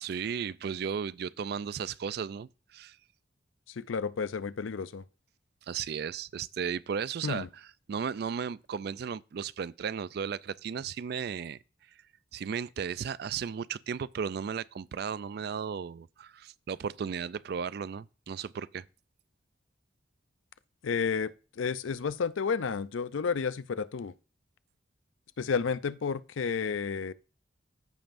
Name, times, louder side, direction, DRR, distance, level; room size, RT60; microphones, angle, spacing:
voice 1, 0.0-3.0 5.7-7.5 7.9-11.6 12.3-18.9, right 7 dB, 55° right, 0.3 m, -35 dB
voice 2, 3.8-5.0 7.2-7.5 20.8-24.1 25.4-27.1, left 5 dB, 90° left, 0.5 m, -31 dB
14.5 x 5.4 x 2.5 m
head